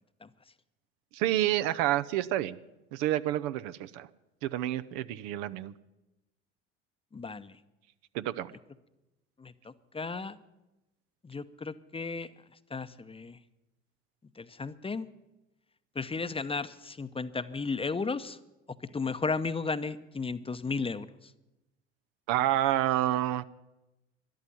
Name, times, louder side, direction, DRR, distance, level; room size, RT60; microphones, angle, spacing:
voice 1, 1.1-2.6 2.9-4.1 4.4-5.7 8.1-8.5 22.3-23.4, right 13 dB, 70° right, 13 dB, 0.7 m, -28 dB
voice 2, 7.1-7.6 9.4-10.4 11.2-12.3 12.7-13.4 14.4-15.1 15.9-18.4 18.9-21.3, left 4 dB, 15° left, 13 dB, 0.7 m, -34 dB
13.0 x 11.0 x 9.2 m, 0.99 s
hypercardioid pair, 70°, 32 cm